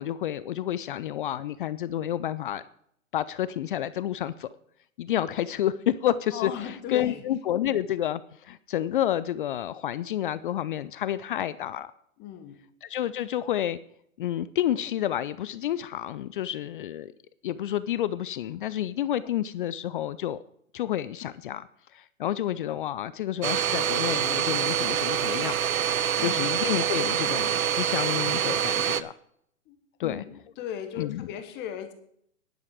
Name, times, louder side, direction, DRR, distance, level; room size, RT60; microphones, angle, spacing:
voice 1, 0.0-2.6 3.1-4.5 5.0-11.9 12.8-13.8 14.2-17.1 17.4-20.4 20.7-21.7 21.9-25.6 26.2-29.1 30.0-30.2 31.0-31.3, left 11 dB, 40° left, 16 dB, 0.4 m, -29 dB
voice 2, 6.3-7.2 12.2-12.6 26.2-26.5 29.7-31.9, left 9 dB, 25° left, 8 dB, 1.2 m, -37 dB
Domestic sounds home sounds, 23.4-29.0, right 9 dB, 80° right, 0.8 m, -26 dB
10.5 x 10.5 x 4.8 m, 0.68 s
hypercardioid pair, 125°, 41 cm